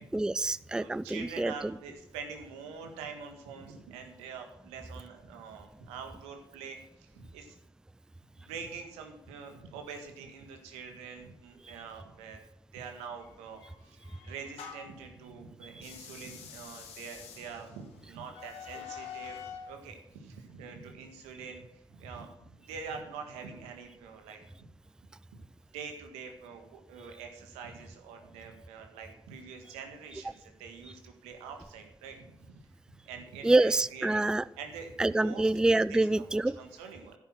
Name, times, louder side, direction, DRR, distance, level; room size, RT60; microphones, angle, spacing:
voice 1, 0.1-1.5 33.4-34.4 35.0-36.6, right 2 dB, 5° right, 19 dB, 0.4 m, -26 dB
voice 2, 0.8-7.6 8.4-12.4 12.7-19.4 19.7-24.7 25.7-32.6 33.1-34.3 34.6-35.5 35.9-37.1, right 5 dB, 85° right, 4 dB, 1.8 m, -45 dB
sound 1, 13.2-15.0 15.7-19.7, left 8 dB, 80° left, 1.9 m, -47 dB
11.0 x 8.3 x 6.2 m, 0.84 s
hypercardioid pair, 45°, 10 cm